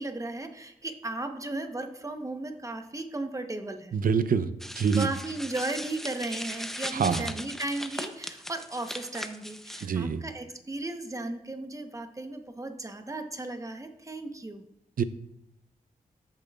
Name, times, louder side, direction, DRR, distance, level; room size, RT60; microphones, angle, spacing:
voice 1, 0.0-3.9 5.0-14.6, right 2 dB, 20° right, 6 dB, 1.0 m, -35 dB
voice 2, 3.9-4.5 4.8-5.1 6.9-7.3 9.8-10.2 15.0-15.1, right 6 dB, 70° right, 12 dB, 0.6 m, -25 dB
sound 1, 4.6-9.9, equal, ahead, 0.7 m, -38 dB
14.0 x 6.8 x 2.4 m, 0.85 s
cardioid pair, 60°, 15 cm